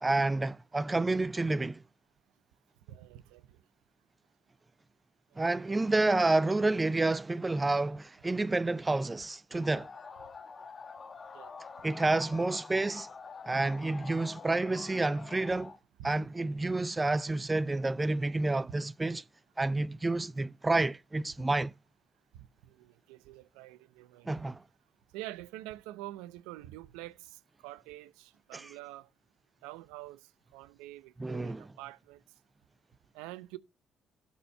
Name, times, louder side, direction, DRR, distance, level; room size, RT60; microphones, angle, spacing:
voice 1, 0.0-1.8 5.4-9.9 11.8-13.1 13.5-15.7 16.0-19.2 19.6-21.7 24.3-24.6 28.5-28.7 31.2-31.6, right 2 dB, 20° right, 0.4 m, -29 dB
voice 2, 2.9-3.4 5.4-5.8 11.3-11.5 16.0-16.1 22.3-24.3 25.1-29.1 29.6-30.2 30.5-32.2 33.1-33.6, right 16 dB, 90° right, 0.5 m, -46 dB
sound 1, 9.6-15.8, left 5 dB, 40° left, 1.3 m, -47 dB
12.0 x 4.4 x 6.5 m
supercardioid pair, 60°, 0 cm